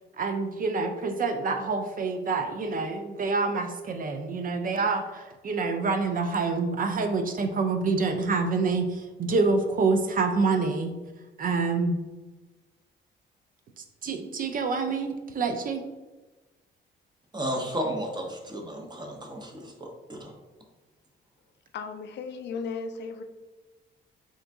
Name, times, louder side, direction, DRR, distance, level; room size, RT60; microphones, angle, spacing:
voice 1, 0.2-10.9 11.4-12.0 13.8-15.8, right 4 dB, 45° right, 6 dB, 0.4 m, -27 dB
voice 2, 17.3-20.3, equal, 20° right, 2 dB, 0.8 m, -33 dB
voice 3, 21.7-23.2, left 5 dB, 60° left, 8 dB, 0.4 m, -35 dB
3.7 x 2.6 x 3.4 m, 1.2 s
cardioid pair, 90°, 20 cm